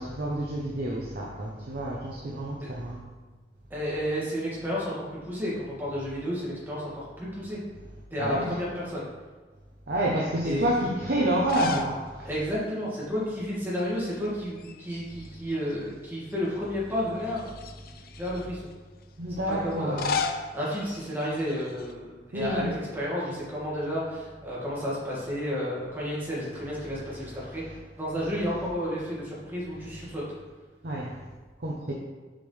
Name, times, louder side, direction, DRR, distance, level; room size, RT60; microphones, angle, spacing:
voice 1, 0.0-3.0 8.2-8.5 9.9-12.3 19.2-20.2 22.3-22.7 30.8-31.2 31.6-31.9, right 1 dB, 55° right, -3 dB, 0.8 m, -29 dB
voice 2, 3.7-7.6 8.1-9.0 10.4-10.7 12.3-17.5 18.2-18.6 19.5-20.1 20.5-27.6 28.0-30.2, equal, 10° right, -7 dB, 2.0 m, -31 dB
sound 1, 11.3-12.0 12.3-12.4 13.8-14.3 14.6-15.7 16.3-16.4 17.3-18.4 19.7-21.9, left 5 dB, 55° left, 0.5 m, -34 dB
7.4 x 5.5 x 3.3 m, 1.3 s
head